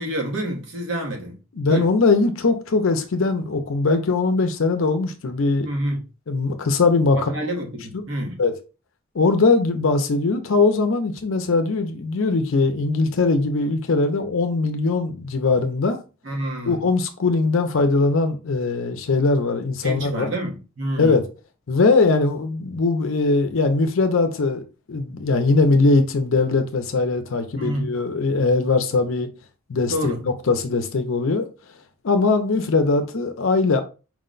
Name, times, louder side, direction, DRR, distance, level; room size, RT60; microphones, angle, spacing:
voice 1, 0.0-1.4 1.7-1.9 5.6-6.0 7.1-8.4 16.2-16.8 19.8-21.2 27.5-27.9 29.9-30.2, right 1 dB, 60° right, 1.1 m, -28 dB
voice 2, 1.5-5.7 6.3-7.3 8.4-8.5 9.1-16.0 16.7-20.3 21.0-21.3 21.7-24.6 24.9-29.3 29.7-31.5 32.0-33.8, left 3 dB, 70° left, 0.5 m, -20 dB
4.7 x 2.2 x 3.8 m
head